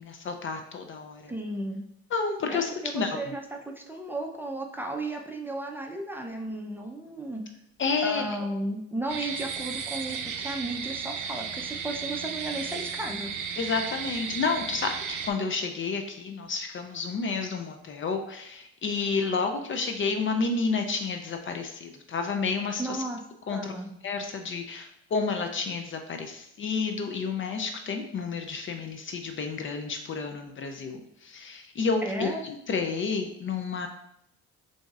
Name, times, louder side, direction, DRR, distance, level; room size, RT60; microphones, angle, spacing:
voice 1, 0.0-1.3 2.1-3.3 7.8-8.3 13.6-23.0 23.5-23.7 24.0-33.9, left 4 dB, 40° left, 5 dB, 0.5 m, -30 dB
voice 2, 1.3-1.8 2.5-7.4 8.0-13.3 22.8-23.2 23.5-23.9 32.0-32.4, right 1 dB, 5° right, 1 dB, 0.5 m, -34 dB
sound 1, 9.1-15.3, right 6 dB, 80° right, 0.5 m, -34 dB
6.0 x 2.7 x 2.4 m, 0.76 s
cardioid pair, 80°, 30 cm